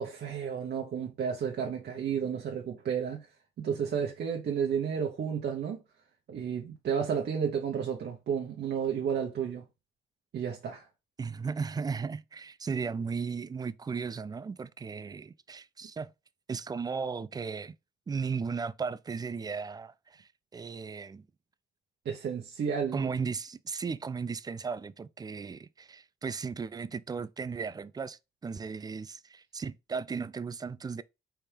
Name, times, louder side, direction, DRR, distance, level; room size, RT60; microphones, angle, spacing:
voice 1, 0.0-3.3 3.6-5.8 6.3-9.6 10.3-10.9 22.0-23.1, right 7 dB, 55° right, 0.9 m, -32 dB
voice 2, 11.2-16.1 16.5-17.7 18.1-21.3 22.9-31.0, right 5 dB, 20° right, 0.3 m, -36 dB
4.3 x 3.5 x 3.3 m
cardioid pair, 90°, 20 cm